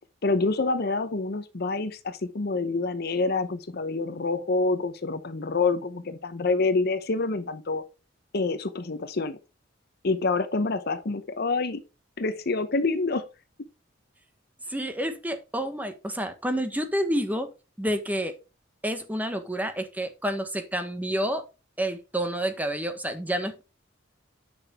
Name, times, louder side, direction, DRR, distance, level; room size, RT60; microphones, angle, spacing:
voice 1, 0.2-7.8 8.3-9.4 10.0-11.8 12.2-13.3, left 3 dB, 55° left, 0.8 m, -27 dB
voice 2, 14.7-17.5 17.8-18.3 18.8-21.5 21.8-23.6, equal, 10° right, 1.2 m, -29 dB
9.7 x 6.1 x 3.5 m
head